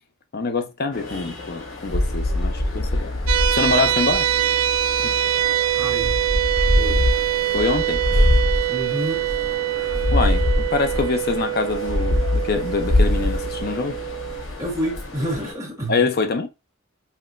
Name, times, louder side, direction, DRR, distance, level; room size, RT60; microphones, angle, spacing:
voice 1, 0.3-3.1 3.5-4.3 5.0-5.2 7.5-8.0 10.1-14.0 15.9-16.5, left 4 dB, 50° left, 0.6 m, -24 dB
sound 1, 0.9-15.5, left 1 dB, 85° left, 1.2 m, -24 dB
sound 2, 3.3-14.4, right 13 dB, 80° right, 0.3 m, -24 dB
voice 2, 5.8-6.2 6.7-7.1 8.7-9.2 14.6-16.0, equal, 15° right, 1.5 m, -28 dB
5.7 x 2.2 x 2.4 m
head